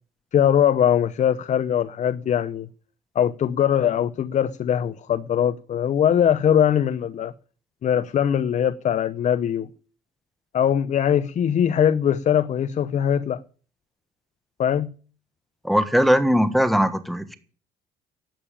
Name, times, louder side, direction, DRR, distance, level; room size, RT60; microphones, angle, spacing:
voice 1, 0.3-2.7 3.1-7.3 7.8-9.7 10.5-13.4 14.6-14.9, left 9 dB, 45° left, 0.7 m, -21 dB
voice 2, 15.6-17.4, equal, ahead, 1.3 m, -20 dB
12.0 x 8.9 x 8.8 m
cardioid pair, 110°, 17 cm